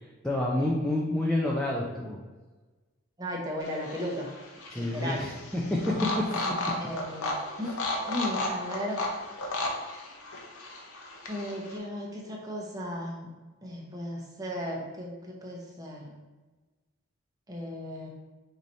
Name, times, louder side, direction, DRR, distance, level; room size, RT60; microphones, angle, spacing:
voice 1, 0.2-2.2 4.7-6.4, left 1 dB, 5° left, -4 dB, 0.4 m, -28 dB
voice 2, 3.2-4.3 4.7-5.3 6.8-7.3 7.6-7.7 8.0-9.0 11.3-13.3 13.6-16.2 17.5-18.1, left 1 dB, 15° right, -2 dB, 0.7 m, -35 dB
sound 1, 3.6-11.8, left 2 dB, 75° left, 0.8 m, -34 dB
4.8 x 2.7 x 4.1 m, 1.3 s
head